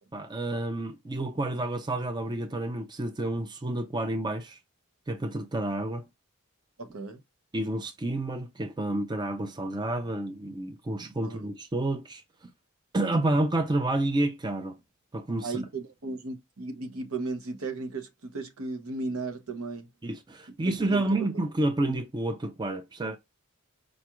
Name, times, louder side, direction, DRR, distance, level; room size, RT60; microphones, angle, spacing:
voice 1, 0.1-4.6 5.1-6.0 7.5-12.2 12.9-14.7 15.1-15.6 20.0-23.2, right 2 dB, 20° right, 0.4 m, -29 dB
voice 2, 6.8-7.2 11.2-11.4 15.4-19.9 20.6-21.0 21.8-21.9, right 3 dB, 85° right, 0.9 m, -35 dB
5.0 x 2.4 x 3.0 m
head